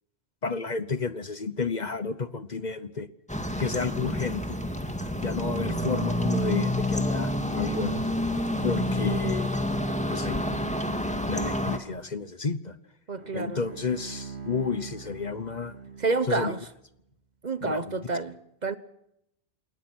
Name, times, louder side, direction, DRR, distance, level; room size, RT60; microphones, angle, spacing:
voice 1, 0.4-3.1 3.6-4.6 5.2-8.1 8.6-9.5 10.1-10.7 11.3-12.8 13.3-15.7 16.3-16.6 17.6-18.0, left 4 dB, 45° left, 1.1 m, -31 dB
sound 1, 3.3-11.8, left 1 dB, 5° left, 2.1 m, -28 dB
voice 2, 13.1-13.6 16.0-16.6 17.4-18.8, right 3 dB, 40° right, 1.1 m, -29 dB
Bowed string instrument, 13.1-16.7, right 5 dB, 70° right, 2.8 m, -43 dB
28.0 x 21.0 x 6.2 m
omnidirectional pair, 1.1 m